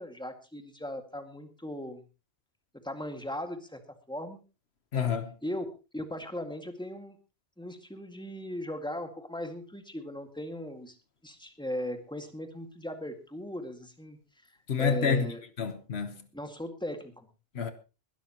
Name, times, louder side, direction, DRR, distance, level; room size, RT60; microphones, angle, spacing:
voice 1, 0.0-2.0 2.8-3.8 4.1-4.4 4.9-5.1 5.4-5.7 5.9-7.2 7.6-11.0 11.2-14.2 14.8-15.4 16.3-17.3, left 1 dB, 5° left, 2.0 m, -38 dB
voice 2, 4.9-5.3 14.7-16.3 17.5-17.7, left 6 dB, 85° left, 1.4 m, -29 dB
21.0 x 12.5 x 3.0 m
omnidirectional pair, 1.1 m